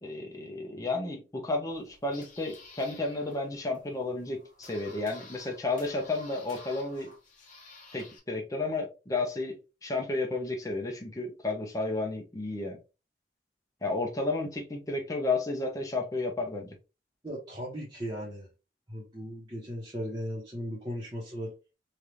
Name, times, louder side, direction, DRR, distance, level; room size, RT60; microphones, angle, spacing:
voice 1, 0.0-7.1 7.9-9.6 9.8-12.8 13.8-16.7, left 2 dB, 20° left, 0.6 m, -32 dB
sound 1, 1.7-8.2, left 2 dB, 50° left, 1.0 m, -52 dB
voice 2, 17.2-18.5 18.9-21.5, equal, 25° right, 0.9 m, -37 dB
3.3 x 2.4 x 2.7 m
head